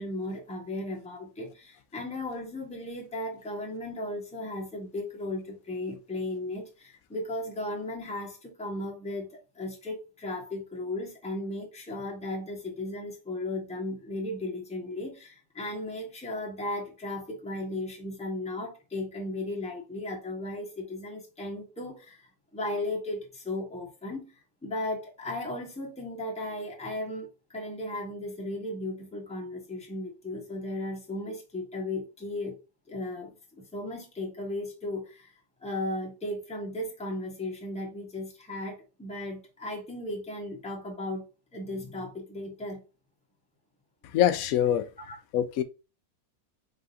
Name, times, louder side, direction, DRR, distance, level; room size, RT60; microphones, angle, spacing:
voice 1, 0.0-22.2 22.5-24.2 24.6-32.5 32.9-35.3 35.6-41.2 41.5-42.8 45.0-45.2, left 1 dB, 5° left, 1.1 m, -36 dB
voice 2, 44.1-44.9 45.3-45.6, left 11 dB, 70° left, 0.9 m, -24 dB
4.2 x 3.6 x 2.7 m
omnidirectional pair, 1.7 m